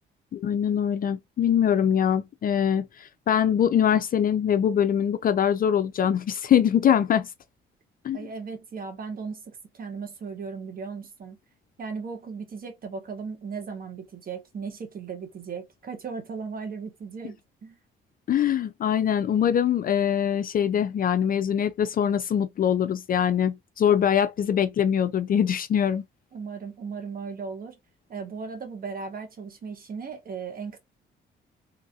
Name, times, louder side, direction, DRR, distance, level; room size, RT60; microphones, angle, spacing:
voice 1, 0.3-7.3 8.0-8.2 18.3-26.0, left 9 dB, 45° left, 0.4 m, -23 dB
voice 2, 8.1-11.4 11.8-17.8 23.9-24.0 26.3-27.8 28.1-30.8, right 5 dB, 45° right, 1.0 m, -37 dB
3.1 x 2.5 x 2.6 m
cardioid pair, 90°, 20 cm